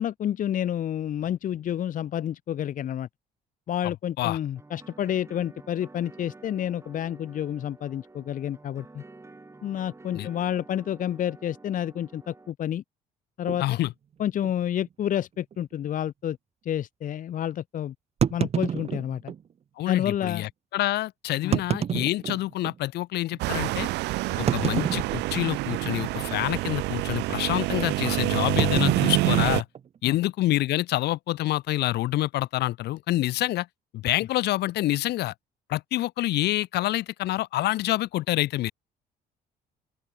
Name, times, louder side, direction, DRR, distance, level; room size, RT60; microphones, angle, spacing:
voice 1, 0.0-3.1 3.7-9.0 9.6-12.8 13.4-13.8 14.2-16.4 16.6-17.9 18.3-19.3 19.9-20.5 21.4-21.6 24.3-24.4 30.0-30.2, left 10 dB, 50° left, 1.2 m, -29 dB
voice 2, 3.8-4.4 10.1-10.3 13.6-13.9 19.8-23.9 24.4-29.7 30.0-33.7 33.9-35.3 35.7-38.7, left 16 dB, 75° left, 2.6 m, -27 dB
sound 1, 4.6-12.5, right 3 dB, 15° right, 7.0 m, -50 dB
sound 2, 13.5-13.7 14.4-14.5 14.8-14.9 15.5-15.6 18.2-19.4 20.2-20.3 21.4-22.8 23.3-23.4 24.5-25.6 25.8-26.2 26.5-26.8 28.6-30.2, right 8 dB, 40° right, 0.9 m, -29 dB
sound 3, 23.4-29.6, right 20 dB, 85° right, 0.7 m, -27 dB
open air
cardioid pair, 110°, 17 cm